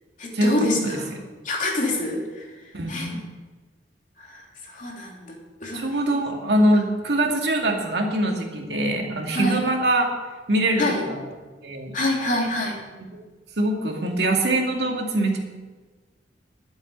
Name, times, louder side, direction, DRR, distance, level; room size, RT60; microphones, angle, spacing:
voice 1, 0.2-1.1 1.4-2.5 2.9-3.2 4.2-5.3 5.6-5.8 9.3-9.6 10.8-11.1 11.9-12.8, left 1 dB, 45° left, -1 dB, 3.0 m, -26 dB
voice 2, 2.7-3.2 5.7-10.1 10.5-11.2 11.6-11.9 13.6-15.4, right 1 dB, 65° right, 1 dB, 2.3 m, -23 dB
11.5 x 7.9 x 8.9 m, 1.3 s
head